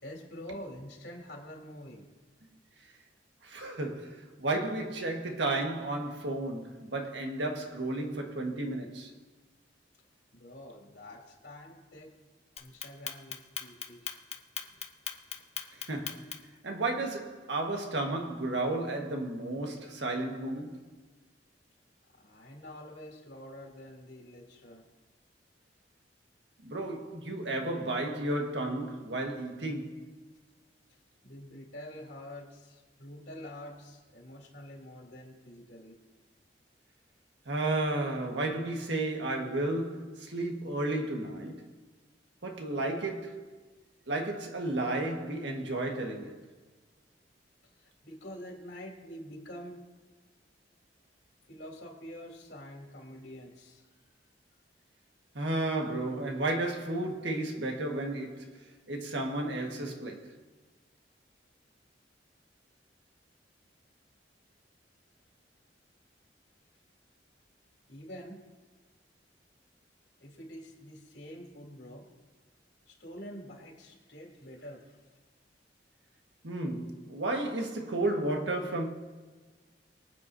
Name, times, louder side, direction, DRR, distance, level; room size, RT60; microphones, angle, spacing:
voice 1, 0.0-2.1 10.3-12.1 12.6-14.1 22.1-24.9 31.2-36.0 47.8-49.8 51.5-53.8 67.9-68.4 70.2-72.1 72.9-75.0, equal, 70° left, 3.2 m, -46 dB
voice 2, 3.4-9.1 15.9-20.9 26.6-30.2 37.4-41.7 42.4-43.5 44.1-46.4 55.3-60.4 76.4-78.9, right 2 dB, 80° right, 1.6 m, -33 dB
Clock, 12.6-16.6, left 8 dB, 35° left, 0.8 m, -38 dB
24.0 x 9.0 x 2.8 m
head